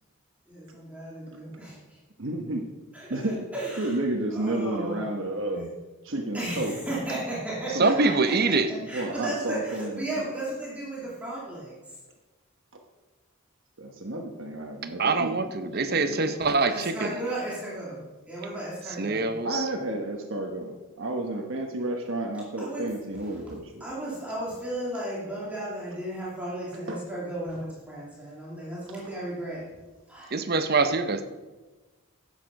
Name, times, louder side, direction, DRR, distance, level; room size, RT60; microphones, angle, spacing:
voice 1, 0.5-2.0 2.9-4.0 4.3-5.0 6.3-11.9 16.7-19.3 22.6-22.9 23.2-23.5 23.8-29.7 30.1-30.3, right 1 dB, 5° right, -8 dB, 2.5 m, -35 dB
voice 2, 2.2-2.6 3.1-3.5 3.8-5.7 6.0-6.8 7.7-7.9 8.9-10.3 13.8-16.3 19.4-23.8 26.9-27.0, right 1 dB, 60° right, 2 dB, 1.1 m, -31 dB
voice 3, 7.8-8.7 15.0-17.2 19.0-19.6 30.3-31.2, right 3 dB, 45° right, 9 dB, 0.8 m, -24 dB
11.0 x 8.3 x 5.3 m, 1.2 s
head